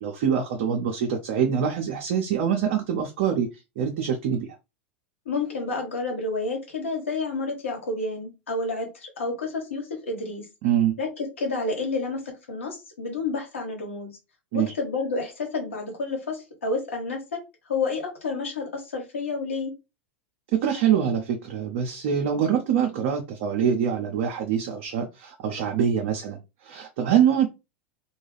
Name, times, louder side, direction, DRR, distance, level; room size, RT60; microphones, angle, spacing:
voice 1, 0.0-3.5 3.8-4.5 10.6-11.0 14.5-14.7 20.5-27.5, right 8 dB, 60° right, 2 dB, 0.6 m, -24 dB
voice 2, 5.2-10.5 11.0-14.1 14.5-17.4 17.7-19.7, left 3 dB, 80° left, 1 dB, 1.1 m, -30 dB
2.3 x 2.2 x 3.3 m, 0.26 s
hypercardioid pair, 90°, 7 cm